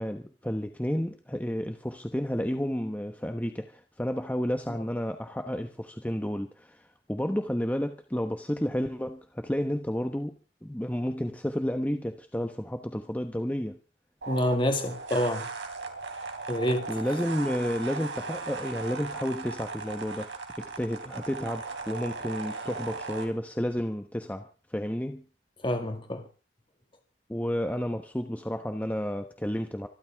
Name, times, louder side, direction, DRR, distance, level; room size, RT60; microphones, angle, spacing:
voice 1, 0.0-10.3 10.6-13.8 16.9-20.3 20.6-25.2 27.3-29.9, equal, 10° left, 1.0 m, -31 dB
sound 1, 14.2-23.2, right 4 dB, 85° right, 3.6 m, -38 dB
voice 2, 14.3-15.5 16.5-16.9 25.6-26.2, left 1 dB, 30° left, 2.0 m, -27 dB
25.0 x 13.5 x 3.5 m
head